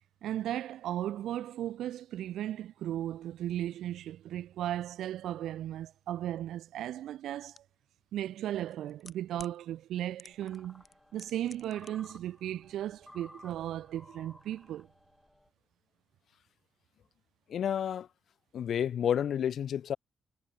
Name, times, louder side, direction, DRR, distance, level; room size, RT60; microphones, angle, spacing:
voice 1, 0.2-7.6 8.1-10.8 11.1-14.9, right 12 dB, 90° right, 0.5 m, -36 dB
sound 1, 7.6-7.7 8.6-9.6 10.2-10.6 10.8-11.9 12.2-12.3, left 5 dB, 40° left, 7.0 m, -50 dB
sound 2, 10.2-15.5, left 1 dB, 10° left, 5.2 m, -57 dB
voice 2, 17.5-18.1 18.5-20.0, left 9 dB, 70° left, 0.3 m, -30 dB
cardioid pair, 80°, 0 cm